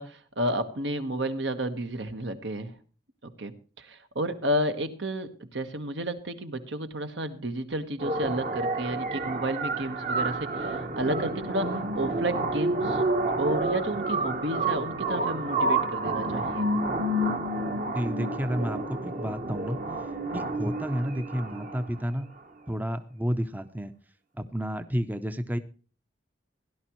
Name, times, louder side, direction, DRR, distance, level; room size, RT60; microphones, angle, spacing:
voice 1, 0.0-2.7 3.2-13.1 13.4-16.7, right 1 dB, 75° right, 8 dB, 1.4 m, -31 dB
sound 1, 8.0-22.0, right 2 dB, 45° right, 1.2 m, -29 dB
voice 2, 17.9-19.8 20.3-22.3 22.7-23.9 24.4-25.6, equal, 10° right, 10 dB, 0.6 m, -31 dB
16.5 x 11.5 x 3.1 m, 0.37 s
head